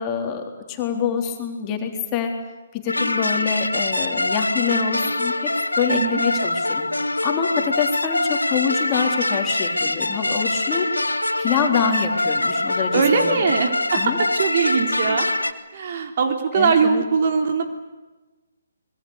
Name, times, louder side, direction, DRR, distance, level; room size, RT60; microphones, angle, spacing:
voice 1, 0.0-2.3 2.7-5.5 5.8-6.9 7.2-10.9 11.4-13.4 13.9-14.2 16.5-17.0, left 7 dB, 25° left, 3 dB, 3.9 m, -25 dB
sound 1, 2.9-15.5, left 2 dB, 90° left, 1.6 m, -24 dB
voice 2, 5.9-6.2 12.9-17.6, right 5 dB, 45° right, 5 dB, 3.5 m, -21 dB
26.0 x 21.5 x 8.4 m, 1.1 s
figure-of-eight pair, 140°, 0 cm